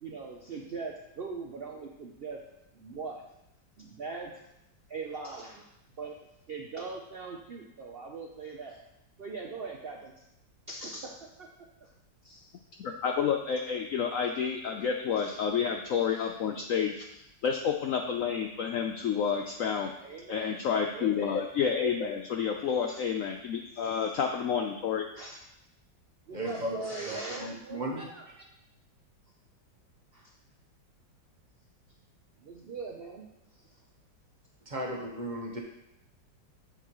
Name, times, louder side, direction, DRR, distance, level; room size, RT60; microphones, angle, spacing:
voice 1, 0.0-2.4 2.7-3.2 3.8-4.3 4.9-5.7 6.0-6.2 6.5-8.8 9.2-10.2 10.7-11.5 11.8-11.9 12.2-12.6 15.2-15.4 16.2-16.3 17.0-17.1 20.0-21.5 22.9-23.0 23.8-24.2 25.2-25.4 26.3-28.3 30.1-30.3 32.4-33.7, right 4 dB, 80° right, 0 dB, 0.5 m, -41 dB
voice 2, 12.8-17.0 17.4-19.9 20.3-25.0, left 7 dB, 75° left, 3 dB, 0.7 m, -29 dB
voice 3, 26.3-28.0 34.7-35.6, right 1 dB, 30° right, -1 dB, 1.0 m, -36 dB
7.9 x 7.0 x 3.0 m, 0.83 s
omnidirectional pair, 1.9 m